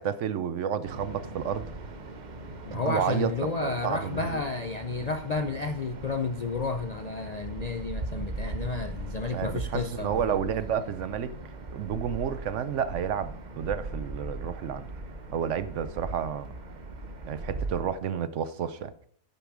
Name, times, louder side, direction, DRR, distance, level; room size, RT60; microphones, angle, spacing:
voice 1, 0.0-1.7 2.7-3.3 3.6-4.4 9.3-11.4 11.7-14.9 15.3-16.5 17.3-18.9, right 8 dB, 65° right, 0.9 m, -30 dB
sound 1, 0.8-17.8, right 2 dB, 40° right, 0.8 m, -39 dB
voice 2, 2.7-10.2, left 3 dB, 50° left, 0.4 m, -31 dB
10.0 x 7.1 x 4.8 m
omnidirectional pair, 1.5 m